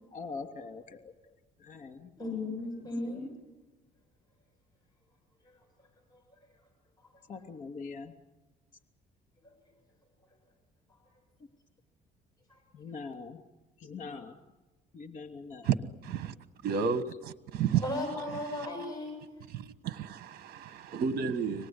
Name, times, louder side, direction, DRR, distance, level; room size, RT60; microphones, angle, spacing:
voice 1, 0.1-2.1 3.0-3.2 7.3-8.1 12.7-13.4 13.8-14.4 14.9-15.7, left 4 dB, 45° left, 3.0 m, -43 dB
voice 2, 2.2-3.2 5.4-5.6 6.1-6.2 7.0-7.1 12.5-12.6 17.8-19.2, left 1 dB, 25° left, 7.7 m, -36 dB
voice 3, 16.0-16.3 16.6-17.8 19.5-21.7, right 7 dB, 65° right, 1.3 m, -31 dB
26.0 x 18.5 x 9.8 m
cardioid pair, 110°, 17 cm